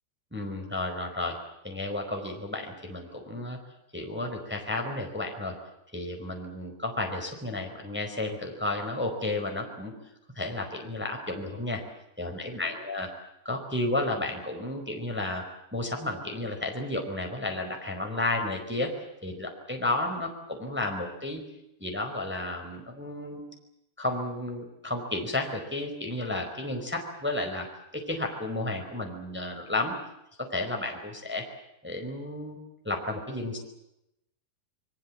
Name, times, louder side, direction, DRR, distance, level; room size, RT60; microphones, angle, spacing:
voice 1, 0.3-1.4 1.6-3.6 3.9-5.5 5.9-9.9 10.3-11.8 12.2-13.1 13.4-15.4 15.7-18.9 19.2-21.4 21.8-23.4 24.0-27.7 27.9-29.9 30.5-31.4 31.8-32.6 32.8-33.6, left 2 dB, 5° right, 3 dB, 4.2 m, -32 dB
28.5 x 22.5 x 7.4 m, 0.85 s
omnidirectional pair, 4.8 m